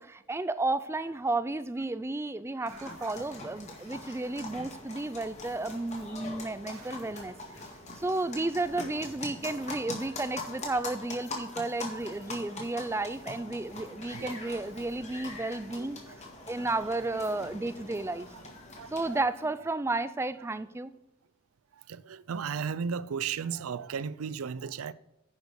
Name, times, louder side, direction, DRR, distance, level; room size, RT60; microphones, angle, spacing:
voice 1, 0.0-7.3 7.6-7.7 8.0-18.3 18.9-20.9, right 2 dB, 10° right, 0.3 m, -33 dB
voice 2, 2.6-3.1 3.9-4.0 6.7-6.9 11.9-12.0 14.1-14.9 15.8-16.2 17.0-17.2 18.8-19.2 21.7-24.9, right 6 dB, 85° right, 0.5 m, -37 dB
sound 1, 2.7-19.2, left 2 dB, 30° left, 1.9 m, -43 dB
10.5 x 5.2 x 4.8 m
head